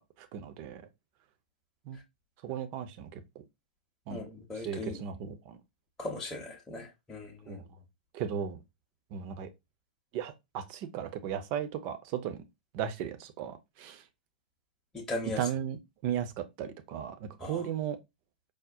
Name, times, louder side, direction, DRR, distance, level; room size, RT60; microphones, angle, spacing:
voice 1, 0.2-0.8 1.9-2.0 2.4-3.4 4.1-4.2 4.5-5.6 7.5-7.6 8.1-8.6 9.1-9.5 10.1-12.4 12.7-14.0 15.4-15.8 16.0-18.0, right 9 dB, 40° right, 0.5 m, -36 dB
voice 2, 4.1-5.0 6.0-7.6 14.9-15.4 17.4-17.6, left 2 dB, 10° left, 0.8 m, -38 dB
4.8 x 2.1 x 2.6 m
figure-of-eight pair, 110°, 5 cm